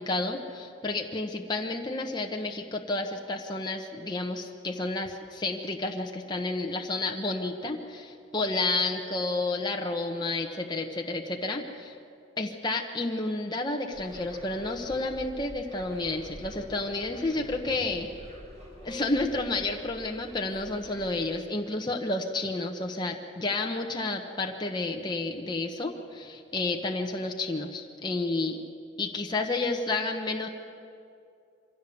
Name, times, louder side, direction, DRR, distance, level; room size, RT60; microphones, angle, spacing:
voice 1, 0.0-11.9 12.4-18.1 18.8-28.6 29.0-30.5, left 2 dB, 20° left, 2 dB, 1.1 m, -31 dB
sound 1, 13.9-21.4, equal, 35° right, 5.3 m, -47 dB
sound 2, 18.9-20.4, left 3 dB, 20° right, 2.7 m, -48 dB
24.5 x 16.0 x 7.1 m, 2.5 s
head